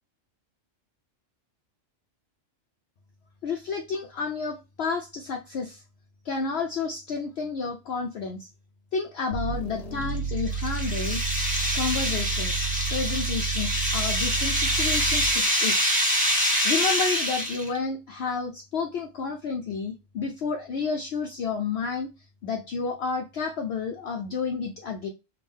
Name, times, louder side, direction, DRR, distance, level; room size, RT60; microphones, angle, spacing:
voice 1, 3.4-5.8 6.2-8.5 8.9-11.2 11.7-15.9 16.6-22.1 22.4-25.1, left 5 dB, 65° left, 0.7 m, -30 dB
sound 1, 9.3-15.5, right 5 dB, 80° left, 1.1 m, -31 dB
sound 2, 10.0-17.8, equal, 5° right, 1.1 m, -26 dB
3.5 x 2.4 x 3.4 m
omnidirectional pair, 1.3 m